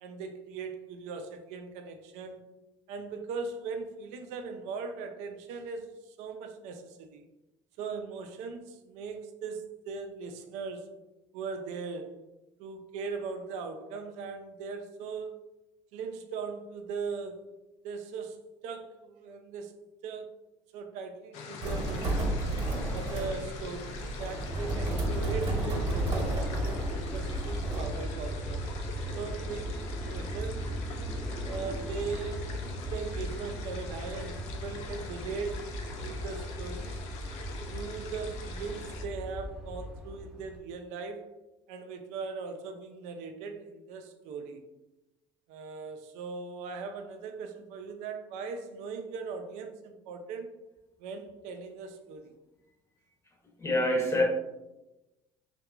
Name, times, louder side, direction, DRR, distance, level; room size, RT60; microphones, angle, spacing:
voice 1, 0.0-2.4 2.9-7.2 7.8-10.9 11.3-12.2 12.6-15.4 15.9-17.5 17.8-19.7 20.0-20.3 20.7-22.3 22.9-28.6 29.1-30.6 31.4-35.7 36.0-37.0 37.7-41.3 41.7-44.6 45.5-50.5 51.0-52.3, right 5 dB, 75° right, 5 dB, 0.4 m, -39 dB
sound 1, 21.3-39.1, left 5 dB, 70° left, 0.5 m, -44 dB
sound 2, 21.6-27.8, right 2 dB, 40° right, 1.0 m, -33 dB
Aircraft, 24.4-40.6, equal, 5° right, 0.5 m, -36 dB
voice 2, 53.6-54.2, left 1 dB, 20° left, -1 dB, 0.8 m, -25 dB
2.7 x 2.2 x 2.3 m, 0.98 s
supercardioid pair, 85°, 12 cm